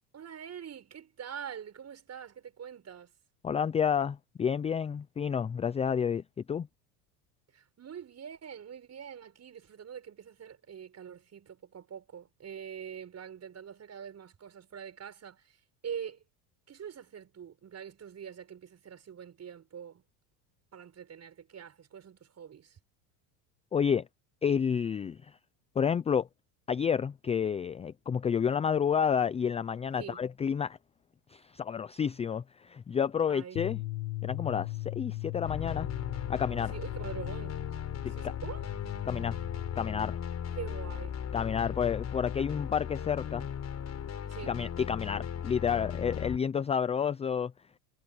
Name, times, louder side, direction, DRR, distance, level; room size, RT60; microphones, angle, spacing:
voice 1, 0.1-3.1 7.5-15.6 15.8-16.2 16.7-20.0 20.7-22.8 30.0-30.2 33.3-33.6 36.7-37.6 38.1-38.7 40.5-41.2 44.3-44.6, right 8 dB, 30° right, 7.0 m, -44 dB
voice 2, 3.4-6.7 23.7-24.1 24.4-25.3 25.8-26.3 26.7-30.8 31.3-33.8 34.2-35.9 36.3-36.7 38.0-38.1 39.1-39.4 39.8-40.2 41.3-43.5 44.4-47.5, left 7 dB, 15° left, 0.4 m, -30 dB
sound 1, 33.6-39.8, left 20 dB, 85° left, 1.2 m, -38 dB
sound 2, 35.4-46.4, left 8 dB, 30° left, 5.0 m, -37 dB
supercardioid pair, 115°, 48 cm